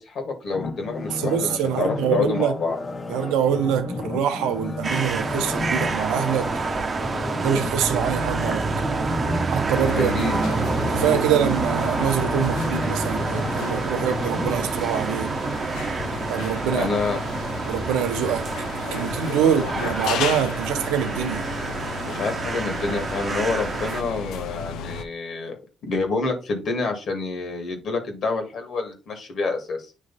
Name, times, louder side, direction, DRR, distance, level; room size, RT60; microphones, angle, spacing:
voice 1, 0.0-2.8 10.0-10.5 16.7-17.2 19.4-19.8 22.1-25.6 25.8-29.9, left 3 dB, 65° left, 2.1 m, -28 dB
sound 1, 0.5-15.6 16.0-16.1, left 3 dB, 45° left, 1.1 m, -33 dB
voice 2, 1.2-2.6 3.1-6.5 7.4-8.7 9.5-10.3 10.9-15.3 16.3-16.9 17.7-18.5 18.9-21.4, right 9 dB, 90° right, 0.8 m, -24 dB
sound 2, 4.8-24.0, right 4 dB, 40° right, 0.9 m, -28 dB
sound 3, 9.7-25.0, left 7 dB, 80° left, 0.6 m, -34 dB
9.2 x 3.2 x 4.1 m
supercardioid pair, 65°, 0 cm